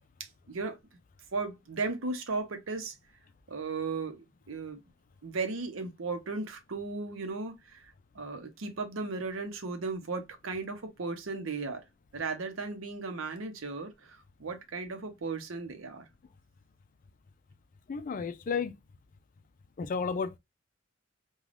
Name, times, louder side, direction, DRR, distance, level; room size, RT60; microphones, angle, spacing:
voice 1, 1.3-2.9 3.5-4.8 5.2-11.8 12.1-16.0, right 3 dB, 75° right, 0.7 m, -36 dB
voice 2, 17.9-18.7 19.8-20.4, left 5 dB, 45° left, 0.4 m, -32 dB
3.3 x 2.3 x 2.4 m
head